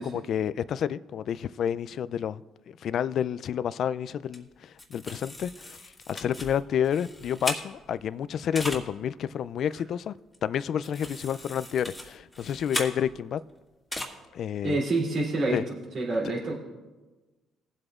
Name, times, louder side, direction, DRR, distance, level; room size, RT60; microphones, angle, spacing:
voice 1, 0.0-10.2 10.4-13.4 14.3-14.8 15.5-15.6, left 9 dB, 65° left, 16 dB, 0.3 m, -30 dB
sound 1, 4.3-4.4 4.8-8.1 8.5-8.8 10.3-10.4 10.8-13.4 13.9-14.0, left 1 dB, 10° left, 1.8 m, -37 dB
voice 2, 14.6-16.5, right 2 dB, 60° right, -3 dB, 2.9 m, -27 dB
21.0 x 7.8 x 2.4 m, 1.2 s
supercardioid pair, 75°, 0 cm